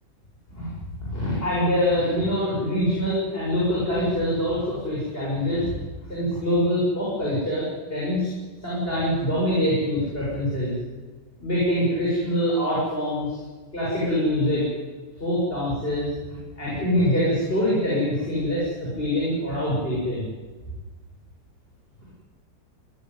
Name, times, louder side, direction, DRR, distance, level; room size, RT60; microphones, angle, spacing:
voice 1, 1.0-5.7 6.1-8.3 8.6-10.8 11.4-13.4 13.7-14.6 15.1-20.3, equal, 30° left, -7 dB, 7.5 m, -24 dB
22.0 x 17.0 x 9.7 m, 1.4 s
omnidirectional pair, 2.0 m